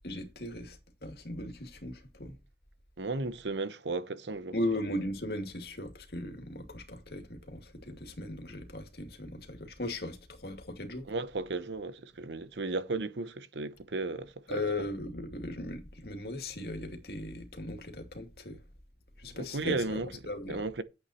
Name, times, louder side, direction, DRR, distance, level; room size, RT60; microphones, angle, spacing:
voice 1, 0.0-2.4 4.5-11.1 14.5-18.6 19.2-20.6, left 1 dB, 60° left, 2.4 m, -38 dB
voice 2, 3.0-4.5 11.1-14.6 19.3-20.1 20.5-20.8, right 3 dB, 85° right, 0.9 m, -34 dB
9.9 x 8.2 x 4.3 m
head